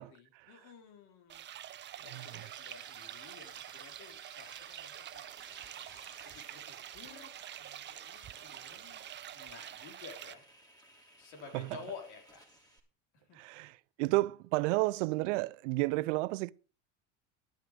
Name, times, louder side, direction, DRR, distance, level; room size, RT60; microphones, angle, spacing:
voice 1, 0.0-1.4 2.0-5.3 6.2-10.5 11.2-12.4 13.1-13.4 14.0-14.1, left 5 dB, 75° left, 4.3 m, -52 dB
sound 1, 1.3-10.3, right 11 dB, 30° right, 0.7 m, -47 dB
sound 2, 2.1-12.8, right 1 dB, 10° left, 3.0 m, -60 dB
voice 2, 13.3-16.5, right 21 dB, 85° right, 0.6 m, -31 dB
12.0 x 9.1 x 5.1 m
supercardioid pair, 120°, 36 cm